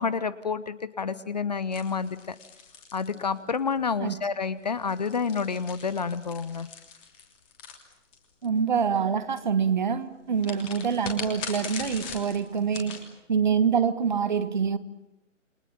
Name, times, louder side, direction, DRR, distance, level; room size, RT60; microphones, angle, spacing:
voice 1, 0.0-2.4 2.9-6.7, left 5 dB, 35° left, 0.9 m, -29 dB
sound 1, 1.7-3.7 4.7-8.4 10.4-13.0, left 6 dB, 15° left, 3.1 m, -41 dB
voice 2, 8.4-14.8, right 6 dB, 35° right, 1.7 m, -26 dB
29.0 x 24.5 x 7.3 m
figure-of-eight pair, 145°, 38 cm